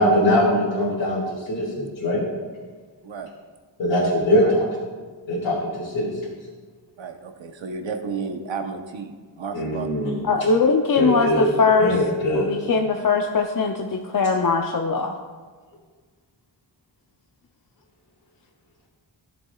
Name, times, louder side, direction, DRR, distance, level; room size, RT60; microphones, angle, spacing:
voice 1, 0.0-2.2 3.8-4.6 5.3-6.3 9.5-10.2 11.0-11.5 11.8-12.5, equal, 80° left, -7 dB, 2.4 m, -22 dB
voice 2, 7.0-9.9, right 5 dB, 85° right, 6 dB, 0.9 m, -32 dB
voice 3, 10.2-12.0 12.3-15.1, left 4 dB, 50° left, 3 dB, 0.6 m, -21 dB
15.0 x 7.1 x 2.3 m, 1.5 s
wide cardioid pair, 75°, 44 cm